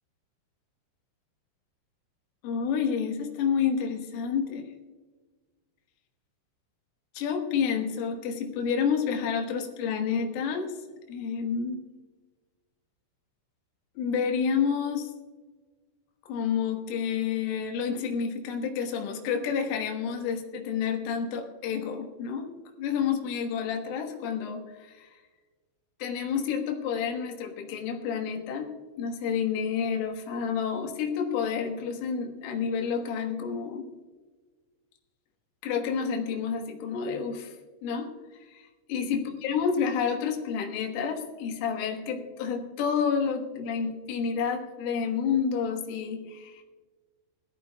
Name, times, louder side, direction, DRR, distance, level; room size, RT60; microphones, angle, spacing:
voice 1, 2.4-4.7 7.2-10.7 11.1-11.8 14.0-15.1 16.3-22.5 22.8-25.2 26.0-28.7 29.0-33.9 35.6-37.6 37.8-46.6, left 6 dB, 85° left, 3 dB, 3.9 m, -29 dB
21.0 x 14.0 x 2.3 m, 1.3 s
omnidirectional pair, 5.6 m